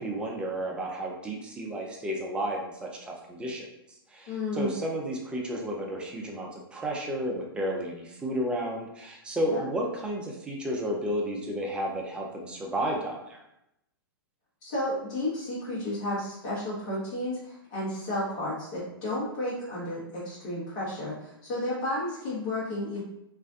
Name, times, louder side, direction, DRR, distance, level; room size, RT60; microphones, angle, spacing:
voice 1, 0.0-3.7 4.1-13.4, equal, 10° right, -1 dB, 0.4 m, -32 dB
voice 2, 4.3-4.7 9.4-9.6 14.6-23.0, left 1 dB, 45° left, -9 dB, 1.0 m, -32 dB
2.5 x 2.1 x 2.4 m, 0.82 s
figure-of-eight pair, 110°, 13 cm